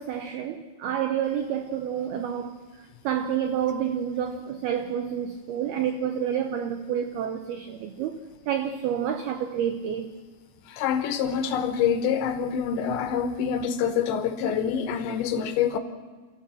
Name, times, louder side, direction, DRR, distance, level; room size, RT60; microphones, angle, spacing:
voice 1, 0.0-2.6 3.0-8.2 8.5-10.1, right 9 dB, 85° right, 2.2 m, -29 dB
voice 2, 10.7-15.8, left 7 dB, 75° left, 3.0 m, -26 dB
29.0 x 14.5 x 7.5 m
omnidirectional pair, 5.8 m